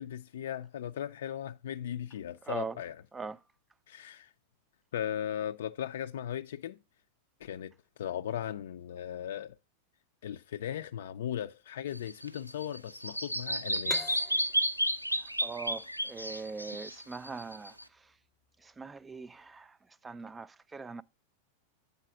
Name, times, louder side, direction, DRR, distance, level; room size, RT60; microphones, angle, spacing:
voice 1, 0.0-2.9 3.9-4.3 4.9-6.8 7.4-7.7 8.0-9.5 10.2-14.2, left 10 dB, 60° left, 0.4 m, -37 dB
voice 2, 2.4-2.8 3.1-3.4 15.1-18.2 18.6-21.0, right 4 dB, 15° right, 0.3 m, -42 dB
Bird vocalization bird call bird song, 11.9-17.8, equal, 90° right, 0.5 m, -32 dB
sound 1, 13.9-17.3, left 3 dB, 10° left, 0.8 m, -45 dB
8.2 x 4.0 x 6.0 m
figure-of-eight pair, 90°, 0 cm